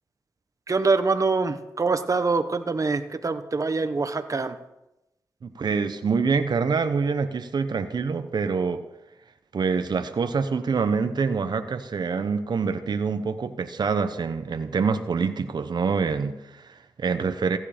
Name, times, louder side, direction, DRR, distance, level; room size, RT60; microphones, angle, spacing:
voice 1, 0.7-4.6, right 4 dB, 45° right, 10 dB, 1.2 m, -24 dB
voice 2, 5.4-8.8 9.5-17.6, right 5 dB, 65° right, 9 dB, 0.9 m, -26 dB
15.0 x 9.5 x 5.1 m, 0.91 s
cardioid pair, 50°, 8 cm